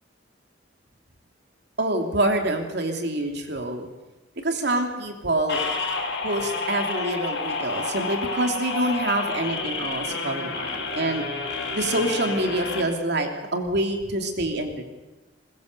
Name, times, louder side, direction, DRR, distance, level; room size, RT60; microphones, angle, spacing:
voice 1, 1.8-3.9 4.4-5.6 6.2-11.2 11.7-14.7, right 1 dB, 65° right, 4 dB, 3.0 m, -26 dB
sound 1, 5.5-12.8, left 4 dB, 65° left, 6.4 m, -30 dB
22.0 x 22.0 x 6.8 m, 1.1 s
head